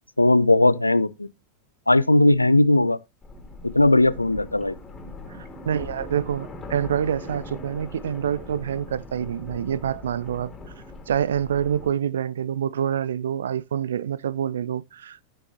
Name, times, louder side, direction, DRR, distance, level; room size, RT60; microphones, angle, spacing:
voice 1, 0.2-1.3 1.9-3.0 3.6-4.8, left 2 dB, 85° left, 0.4 m, -18 dB
sound 1, 3.2-11.9, left 2 dB, 20° left, 2.7 m, -40 dB
voice 2, 5.4-10.5 11.1-15.2, right 9 dB, 65° right, 0.4 m, -26 dB
13.5 x 6.2 x 2.8 m
figure-of-eight pair, 90°, 0 cm